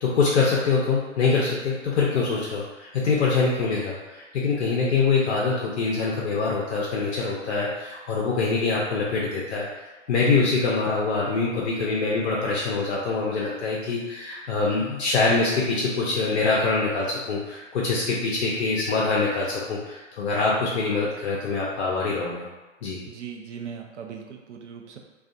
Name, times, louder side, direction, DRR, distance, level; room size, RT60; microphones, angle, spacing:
voice 1, 0.0-9.8 10.1-22.4 22.8-23.0, left 4 dB, 60° left, -4 dB, 0.6 m, -24 dB
voice 2, 23.1-25.0, right 7 dB, 65° right, 2 dB, 0.5 m, -39 dB
2.5 x 2.3 x 2.5 m, 1.2 s
figure-of-eight pair, 110°, 38 cm